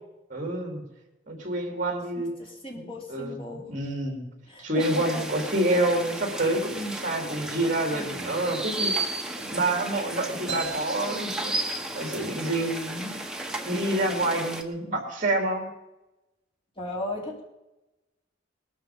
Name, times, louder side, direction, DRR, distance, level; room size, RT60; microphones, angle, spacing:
voice 1, 0.3-0.8 1.3-2.4 2.7-4.2 4.6-8.9 9.4-11.5 11.9-13.2 13.6-15.7, right 1 dB, 40° right, 3 dB, 3.9 m, -28 dB
voice 2, 2.2-3.7 4.5-5.1 7.9-8.4 16.8-17.4, left 1 dB, 30° left, 0 dB, 3.2 m, -37 dB
sound 1, 4.8-14.6, right 2 dB, 5° right, 1.3 m, -34 dB
sound 2, 10.5-12.2, right 5 dB, 70° right, 5.6 m, -39 dB
20.5 x 12.5 x 5.4 m, 0.98 s
head